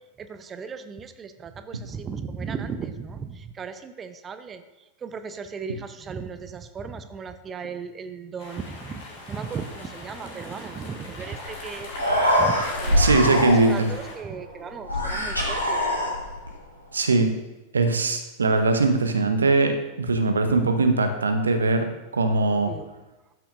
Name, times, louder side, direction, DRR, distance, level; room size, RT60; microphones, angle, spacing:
voice 1, 0.2-4.6 5.0-11.9 12.4-15.8 22.7-22.9, right 5 dB, 20° right, 9 dB, 0.6 m, -36 dB
sound 1, 8.4-14.1, left 2 dB, 55° left, 1.7 m, -40 dB
Human voice, 11.5-11.6 11.8-13.9 14.8-16.5, left 1 dB, 90° right, 1.4 m, -24 dB
voice 2, 13.0-13.9 16.9-17.4 17.7-21.9 22.1-22.7, right 3 dB, 75° right, 7 dB, 0.8 m, -21 dB
12.0 x 5.8 x 2.5 m, 1.1 s
figure-of-eight pair, 90°, 0 cm